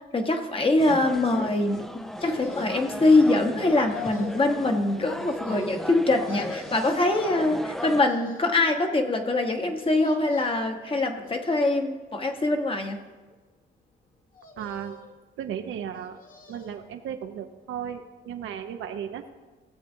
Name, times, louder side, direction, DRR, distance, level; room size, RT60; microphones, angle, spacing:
voice 1, 0.0-13.0, left 2 dB, 25° left, 5 dB, 1.1 m, -23 dB
sound 1, 0.8-8.0, equal, ahead, 0.4 m, -37 dB
sound 2, 2.2-3.0 3.6-4.5 5.2-6.0 6.3-7.1 7.7-8.6 9.8-10.7 11.2-11.9 12.5-13.3 14.3-15.2 15.9-16.8 17.2-17.3, left 4 dB, 45° left, 1.3 m, -43 dB
voice 2, 14.6-15.0 15.4-16.2 16.5-19.3, right 9 dB, 80° right, 6 dB, 0.8 m, -35 dB
18.0 x 7.7 x 2.7 m, 1.3 s
cardioid pair, 90°, 20 cm